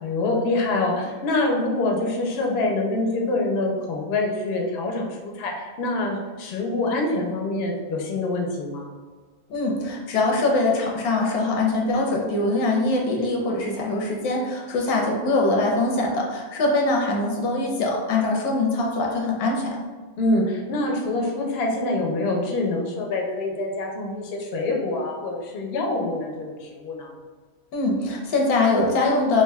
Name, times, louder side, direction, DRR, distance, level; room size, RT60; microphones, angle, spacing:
voice 1, 0.0-8.9 20.2-27.1, left 2 dB, 65° left, 0 dB, 0.6 m, -25 dB
voice 2, 9.5-19.8 27.7-29.4, left 2 dB, 90° left, -1 dB, 1.1 m, -23 dB
3.3 x 2.5 x 2.2 m, 1.4 s
omnidirectional pair, 1.5 m